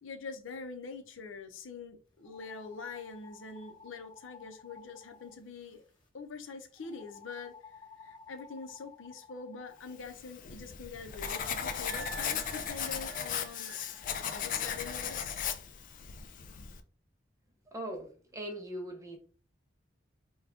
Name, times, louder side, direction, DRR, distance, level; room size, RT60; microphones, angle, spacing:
voice 1, 0.0-5.8 6.1-15.4, left 4 dB, 80° left, 0.6 m, -45 dB
sound 1, 2.2-6.1 6.7-10.0 11.1-14.3, left 5 dB, 25° left, 1.0 m, -55 dB
Writing, 10.1-16.8, left 8 dB, 45° left, 0.3 m, -37 dB
Wind instrument woodwind instrument, 11.8-13.9, right 4 dB, 70° right, 0.3 m, -48 dB
voice 2, 17.7-19.2, right 1 dB, 15° right, 0.7 m, -40 dB
3.5 x 2.3 x 3.6 m
head